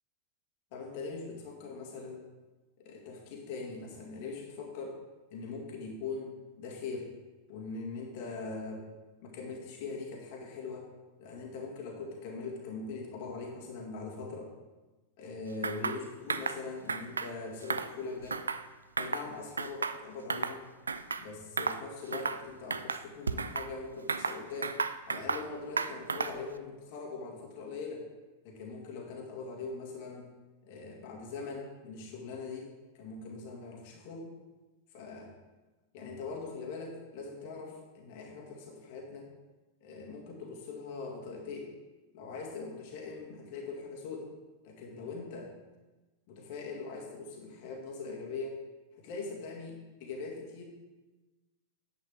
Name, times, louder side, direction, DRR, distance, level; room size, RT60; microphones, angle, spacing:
voice 1, 0.7-2.2 2.8-5.0 5.3-7.1 7.5-8.9 9.2-10.9 11.2-14.5 15.2-18.5 19.0-20.6 21.2-24.8 25.1-28.1 28.4-30.3 30.6-34.3 34.9-35.4 35.9-39.3 39.8-41.7 42.1-44.3 44.6-45.5 46.3-48.6 49.0-50.6, left 4 dB, 50° left, 0 dB, 1.9 m, -41 dB
sound 1, 15.6-16.0 16.3-16.6 16.9-17.3 17.6-18.7 19.0-19.3 19.6-20.6 20.9-21.2 21.6-21.8 22.1-22.4 22.7-23.7 24.1-25.5 25.8-26.5, right 4 dB, 75° right, 0.3 m, -33 dB
10.0 x 8.0 x 3.5 m, 1.2 s
figure-of-eight pair, 90°, 0 cm